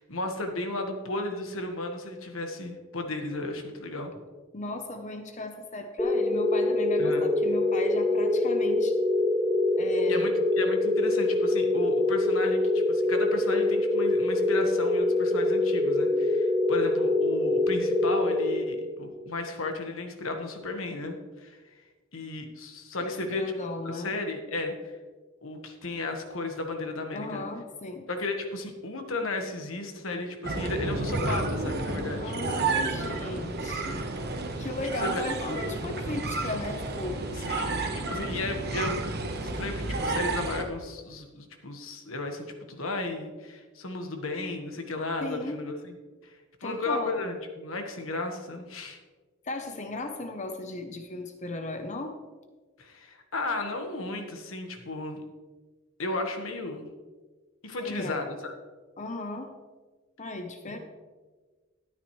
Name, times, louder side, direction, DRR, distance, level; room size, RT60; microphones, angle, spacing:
voice 1, 0.0-4.1 7.0-7.2 10.1-21.6 22.1-23.5 23.8-24.9 25.4-27.5 28.1-32.3 35.0-35.2 37.4-39.2 39.4-45.9 46.2-46.3 46.6-49.0 52.8-55.2 56.0-56.9 57.6-58.5 60.7-60.8, left 2 dB, 85° left, 4 dB, 1.4 m, -34 dB
voice 2, 4.5-9.0 9.8-10.3 23.0-24.1 27.1-28.1 32.2-34.0 34.6-37.2 45.2-45.6 46.6-47.2 49.4-52.1 57.8-58.2 59.0-59.5 60.2-60.8, left 2 dB, 35° left, 6 dB, 0.8 m, -36 dB
sound 1, 6.0-19.1, left 2 dB, 5° left, 0.7 m, -25 dB
sound 2, 30.4-40.6, right 3 dB, 55° right, 1.2 m, -31 dB
13.0 x 9.1 x 3.2 m, 1.3 s
head